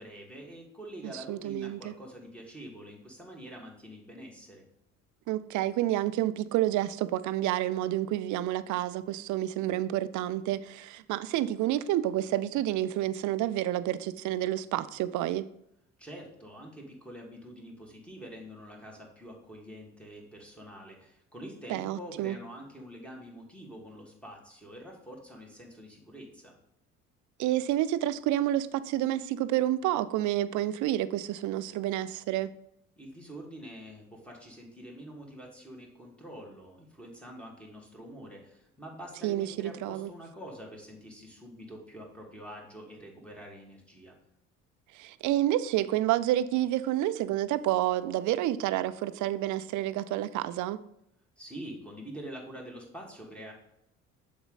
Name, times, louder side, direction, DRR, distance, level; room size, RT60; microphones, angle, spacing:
voice 1, 0.0-4.6 16.0-26.5 33.0-44.1 51.4-53.5, equal, 5° left, 2.5 m, -46 dB
voice 2, 1.3-1.9 5.3-15.5 21.7-22.4 27.4-32.5 39.2-40.1 44.9-50.8, right 13 dB, 50° right, 0.5 m, -29 dB
6.8 x 5.2 x 4.1 m
hypercardioid pair, 55°, 38 cm